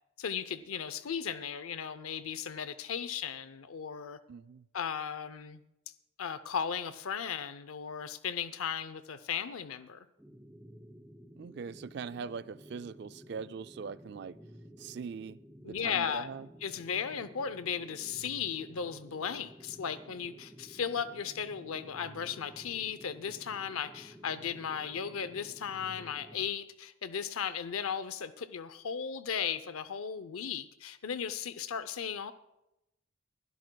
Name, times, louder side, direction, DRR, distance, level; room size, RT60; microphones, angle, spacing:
voice 1, 0.2-4.2 4.7-5.6 6.2-10.1 15.6-16.3 16.6-32.3, left 7 dB, 90° left, 0.6 m, -36 dB
voice 2, 4.3-4.7 11.4-14.4 14.8-15.4 15.6-16.5, right 5 dB, 50° right, 0.3 m, -41 dB
sound 1, 10.2-26.5, equal, 5° right, 0.8 m, -53 dB
22.5 x 12.5 x 2.3 m
head